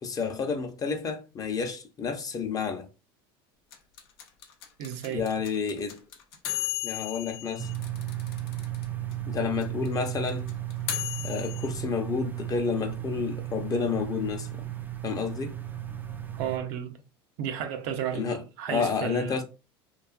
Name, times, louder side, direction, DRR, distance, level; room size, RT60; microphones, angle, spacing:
voice 1, 0.0-2.9 5.1-6.0 6.8-7.7 9.2-10.5 11.2-14.7 15.0-15.6 18.1-19.4, left 5 dB, 30° left, 0.6 m, -30 dB
sound 1, 3.7-8.8 9.1-9.2 9.4-11.7, left 12 dB, 85° left, 0.5 m, -35 dB
voice 2, 4.8-5.3 16.3-17.0 17.4-19.4, right 9 dB, 65° right, 0.5 m, -33 dB
sound 2, 7.6-16.6, right 13 dB, 15° right, 0.3 m, -35 dB
2.6 x 2.3 x 2.4 m
supercardioid pair, 95°, 12 cm